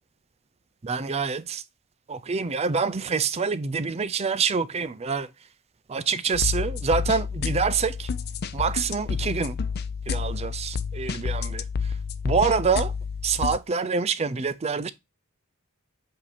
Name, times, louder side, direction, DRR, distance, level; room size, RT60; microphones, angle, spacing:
voice 1, 0.8-1.6 2.1-5.3 5.9-8.1 8.5-9.6 10.1-11.6 12.2-12.9 13.2-14.9, right 5 dB, 30° right, 0.5 m, -26 dB
sound 1, 6.3-13.6, left 5 dB, 50° left, 0.4 m, -30 dB
7.7 x 2.8 x 4.9 m
head